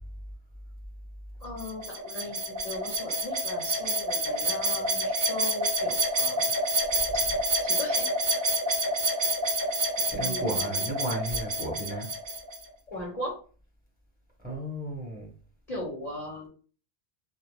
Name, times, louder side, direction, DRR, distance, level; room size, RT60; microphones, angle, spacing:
voice 1, 1.4-6.5 7.6-8.4 10.2-10.8 12.9-13.4 15.7-16.5, left 1 dB, 45° left, -2 dB, 0.8 m, -38 dB
sound 1, 1.6-12.6, right 1 dB, 65° right, 1.0 m, -28 dB
voice 2, 10.0-12.1 12.9-13.0 14.4-15.3, right 1 dB, 10° right, -3 dB, 0.9 m, -34 dB
2.7 x 2.0 x 3.1 m, 0.40 s
omnidirectional pair, 1.1 m